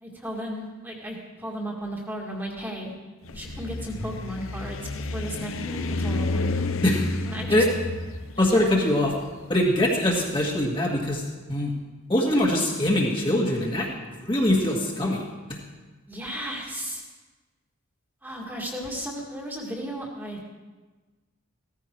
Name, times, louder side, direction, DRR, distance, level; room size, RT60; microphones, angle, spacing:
voice 1, 0.0-2.9 3.3-6.6 7.3-7.6 8.3-8.8 16.1-17.0 18.2-20.5, equal, 10° right, -2 dB, 1.9 m, -35 dB
sound 1, 3.2-10.4, left 2 dB, 70° left, 0.8 m, -31 dB
voice 2, 8.4-9.1 9.5-11.2 11.5-11.7 12.1-13.9 14.2-15.2 15.5-15.6, left 1 dB, 20° left, -2 dB, 1.8 m, -22 dB
16.0 x 14.0 x 4.6 m, 1.3 s
head